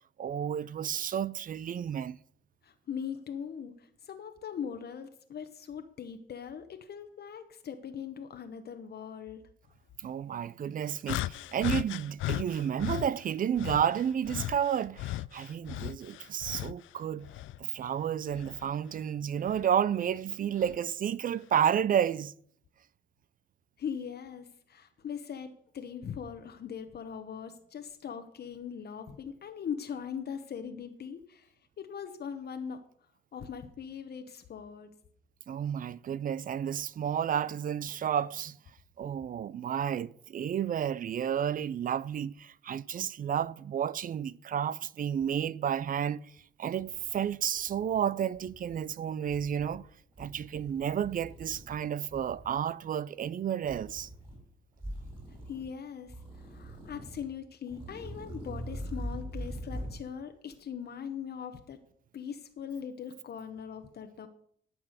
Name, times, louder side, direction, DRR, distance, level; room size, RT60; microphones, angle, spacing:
voice 1, 0.2-2.2 10.0-17.3 17.6-22.3 35.5-38.6 39.0-46.2 46.6-49.9 50.2-54.1, right 9 dB, 45° right, 0.5 m, -31 dB
voice 2, 2.6-9.4 23.8-32.8 33.3-34.9 55.5-61.8 62.1-64.3, left 7 dB, 55° left, 1.1 m, -40 dB
sound 1, 11.1-13.1 13.6-16.9 17.2-18.7 19.5-19.6 20.6-20.8, left 15 dB, 75° left, 0.4 m, -36 dB
sound 2, 46.4-46.5 46.8-48.0 48.3-48.8 49.2-49.8 50.1-51.8 52.1-52.6 53.6-54.4 54.8-55.7 56.1-57.3 57.7-60.0, equal, 25° right, 5.6 m, -42 dB
12.0 x 6.0 x 6.5 m
cardioid pair, 90°, 20 cm